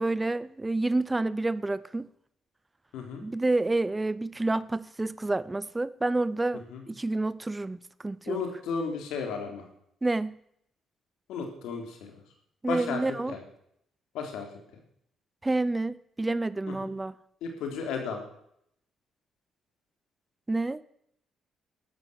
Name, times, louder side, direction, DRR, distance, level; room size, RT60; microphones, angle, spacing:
voice 1, 0.0-2.1 3.2-6.6 6.9-8.4 10.0-10.4 12.6-13.3 15.4-17.1 20.5-20.8, right 2 dB, 15° right, 0.6 m, -29 dB
voice 2, 8.3-9.6 11.3-12.1 12.7-13.0 13.3-13.4 14.1-14.5 16.7-16.9 17.4-18.2, left 5 dB, 90° left, 3.5 m, -34 dB
13.0 x 11.5 x 8.0 m
cardioid pair, 90°, 0 cm